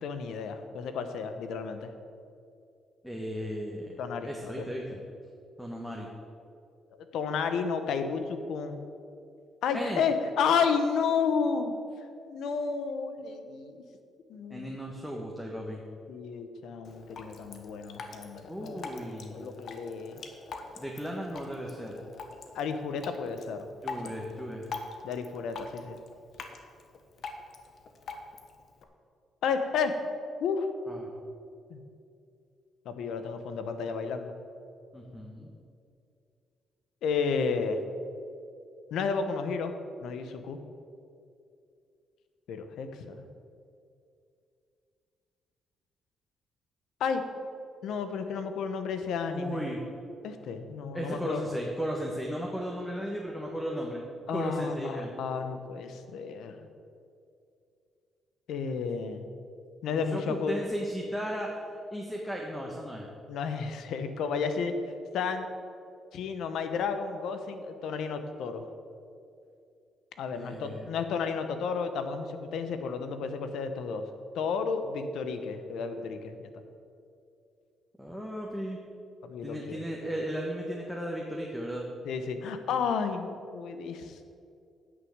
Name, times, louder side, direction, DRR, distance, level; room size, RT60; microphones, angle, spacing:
voice 1, 0.0-1.9 4.0-4.7 7.1-8.8 9.6-11.7 12.3-13.8 14.3-14.7 16.1-18.8 19.3-20.2 22.5-23.7 24.0-24.1 25.0-26.0 29.4-29.9 30.4-30.7 31.7-31.8 32.8-34.3 37.0-37.8 38.9-39.7 40.0-40.6 42.5-43.2 47.0-47.2 47.8-49.7 50.2-51.5 54.3-56.6 58.5-59.3 59.8-60.6 63.3-64.7 65.1-65.5 66.1-68.7 70.2-74.1 74.3-76.5 79.2-80.1 82.0-84.4, left 5 dB, 80° left, 8 dB, 0.9 m, -32 dB
voice 2, 3.0-5.0 5.6-6.1 9.7-10.0 14.5-15.8 18.5-19.5 20.8-22.1 23.8-24.6 30.9-31.1 34.9-35.5 49.3-49.8 50.9-54.0 54.3-55.1 59.9-61.6 61.9-63.1 70.3-70.9 78.0-78.8 79.4-81.9, equal, 5° left, -1 dB, 1.3 m, -35 dB
Drip, 16.8-28.8, left 4 dB, 60° left, 1.1 m, -44 dB
9.7 x 6.3 x 7.3 m, 2.5 s
cardioid pair, 90°, 0 cm